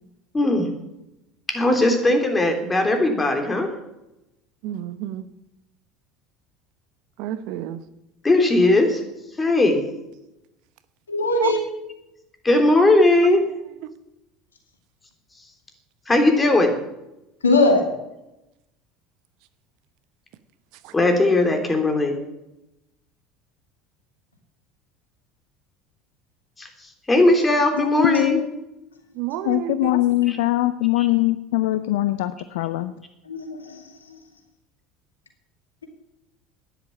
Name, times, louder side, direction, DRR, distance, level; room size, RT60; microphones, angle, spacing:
voice 1, 0.3-0.7 1.5-3.7 8.2-9.0 9.4-9.8 12.4-13.4 16.1-16.7 20.9-22.1 26.6-26.7 27.1-28.4, left 2 dB, 20° left, 4 dB, 3.5 m, -18 dB
voice 2, 4.6-5.3 7.2-7.8 11.4-11.5 20.8-20.9 29.2-30.0, right 13 dB, 60° right, 13 dB, 0.9 m, -29 dB
voice 3, 11.1-11.6 17.4-17.9 33.3-33.8, left 2 dB, 85° left, 4 dB, 2.4 m, -20 dB
voice 4, 27.8-28.5 29.4-33.0, left 15 dB, 65° left, 12 dB, 0.5 m, -22 dB
12.5 x 10.5 x 7.3 m, 0.91 s
figure-of-eight pair, 70°, 0 cm